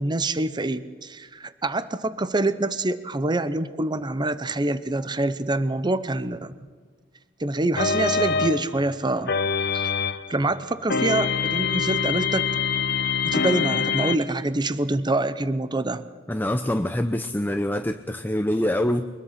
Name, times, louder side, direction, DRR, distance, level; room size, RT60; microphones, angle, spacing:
voice 1, 0.0-6.5 7.4-9.3 9.7-9.9 10.3-12.5 13.2-16.0, right 2 dB, 25° right, 14 dB, 0.7 m, -26 dB
sound 1, 7.8-10.4 10.9-14.2, left 5 dB, 55° left, 1.0 m, -25 dB
voice 2, 16.3-19.1, left 1 dB, 10° left, 8 dB, 0.6 m, -25 dB
23.5 x 21.5 x 5.8 m, 1.5 s
head